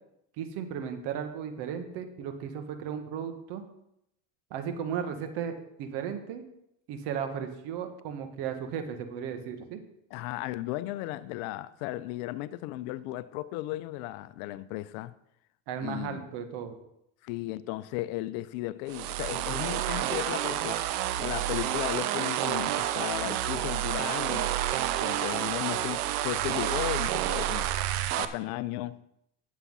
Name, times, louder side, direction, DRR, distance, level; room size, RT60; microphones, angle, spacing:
voice 1, 0.4-3.6 4.5-6.4 6.9-9.8 15.7-16.8, right 8 dB, 65° right, 1.7 m, -35 dB
voice 2, 10.1-15.1 15.8-16.2 17.2-20.8 21.2-24.6 25.0-29.0, left 16 dB, 70° left, 0.7 m, -35 dB
sound 1, 18.9-28.3, right 12 dB, 85° right, 0.9 m, -29 dB
9.7 x 7.3 x 5.6 m
supercardioid pair, 105°, 44 cm